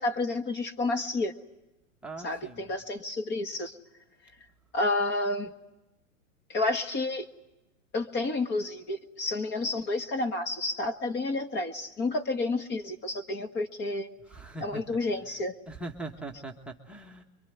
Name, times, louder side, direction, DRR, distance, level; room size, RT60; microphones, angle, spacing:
voice 1, 0.0-1.3 2.2-3.7 4.7-5.5 6.5-7.3 7.9-14.1 14.6-15.5, left 2 dB, 25° left, 7 dB, 1.7 m, -30 dB
voice 2, 2.0-2.7 14.3-14.8 15.7-17.2, right 2 dB, 5° right, 5 dB, 1.3 m, -41 dB
24.0 x 23.5 x 9.3 m, 0.96 s
hypercardioid pair, 135°, 41 cm